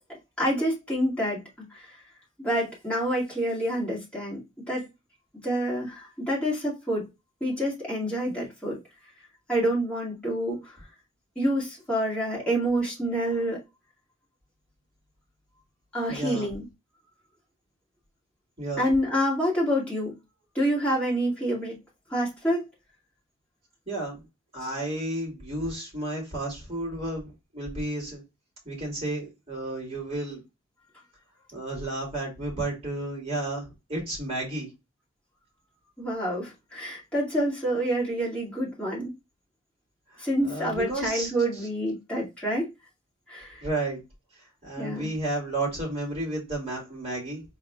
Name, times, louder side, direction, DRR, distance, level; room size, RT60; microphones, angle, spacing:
voice 1, 0.4-2.0 2.4-4.9 5.4-7.0 7.4-8.8 9.5-10.8 11.4-13.6 15.9-16.6 18.8-20.1 20.5-21.8 22.1-22.6 36.0-39.1 40.2-42.7 43.3-43.6 44.8-45.1, equal, 5° left, 2.2 m, -27 dB
voice 2, 16.1-16.5 18.6-18.9 23.9-24.2 24.5-28.2 28.6-30.4 31.5-34.7 40.1-41.3 43.6-44.0 44.6-47.4, right 2 dB, 30° right, 2.6 m, -32 dB
4.8 x 4.0 x 2.3 m
head